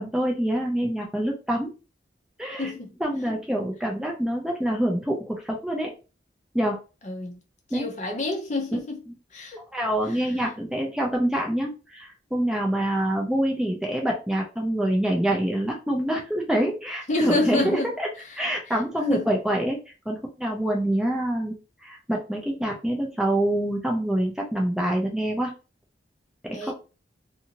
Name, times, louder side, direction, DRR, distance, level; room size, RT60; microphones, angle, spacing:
voice 1, 0.0-1.7 2.4-2.7 3.0-5.9 6.5-6.8 7.7-7.9 8.7-8.8 9.7-18.1 18.4-19.8 20.1-21.6 21.8-25.5 26.4-26.7, right 1 dB, 5° right, 0.4 m, -26 dB
voice 2, 2.6-2.9 7.0-7.4 7.7-9.0 9.3-9.6 17.1-17.9 19.1-19.3 26.5-26.7, left 2 dB, 40° left, 0.6 m, -27 dB
2.6 x 2.5 x 2.8 m
head